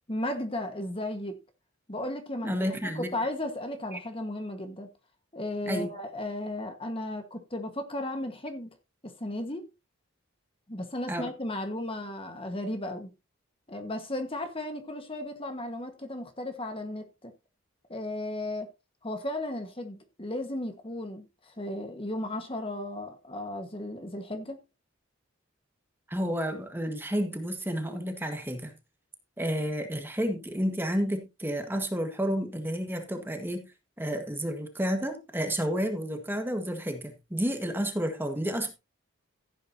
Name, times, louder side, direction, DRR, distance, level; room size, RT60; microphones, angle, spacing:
voice 1, 0.1-1.4 1.9-2.7 2.9-4.9 5.3-8.7 9.0-9.7 10.7-13.1 13.7-17.3 17.9-18.7 19.0-24.6, left 1 dB, 25° left, 1.4 m, -35 dB
voice 2, 2.4-3.2 3.9-4.0 5.7-5.9 11.1-11.3 26.1-28.7 29.4-33.7 34.0-38.7, equal, 10° right, 1.5 m, -31 dB
15.0 x 8.9 x 2.8 m
head